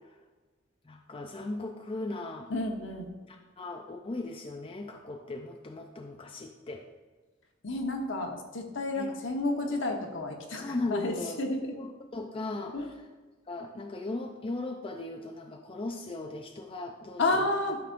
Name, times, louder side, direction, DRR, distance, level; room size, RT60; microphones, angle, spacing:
voice 1, 0.8-2.5 3.3-6.8 8.9-9.1 9.7-9.8 10.6-11.4 11.7-12.8 13.5-17.5, left 2 dB, 25° left, 3 dB, 0.5 m, -37 dB
voice 2, 2.5-3.1 7.6-11.7 12.7-12.9 17.2-17.8, left 2 dB, 65° left, 3 dB, 1.1 m, -31 dB
12.5 x 5.9 x 2.6 m, 1.3 s
head